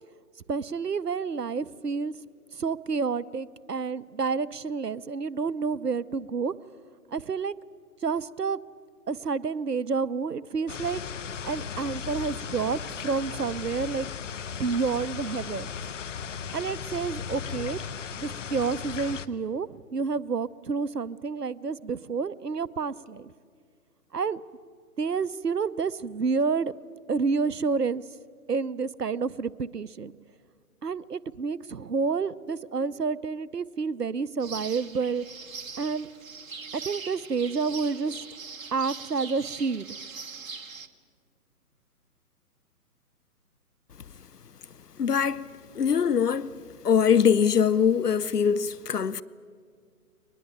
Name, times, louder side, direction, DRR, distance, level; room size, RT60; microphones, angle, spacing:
voice 1, 0.5-2.1 2.5-6.5 7.1-7.5 8.0-8.6 9.1-11.0 11.4-14.1 14.6-15.7 16.5-17.8 18.1-23.3 24.1-24.4 25.0-26.7 27.1-28.0 28.5-30.1 30.8-35.2 35.8-36.1 36.7-38.2 38.7-40.0, right 5 dB, 90° right, 0.8 m, -29 dB
sound 1, 10.7-19.3, left 7 dB, 55° left, 0.9 m, -36 dB
sound 2, 34.4-40.9, right 5 dB, 60° right, 1.5 m, -41 dB
voice 2, 45.0-45.5 45.7-46.5 46.8-49.2, left 7 dB, 85° left, 0.7 m, -22 dB
23.0 x 20.5 x 8.9 m
figure-of-eight pair, 135°, 46 cm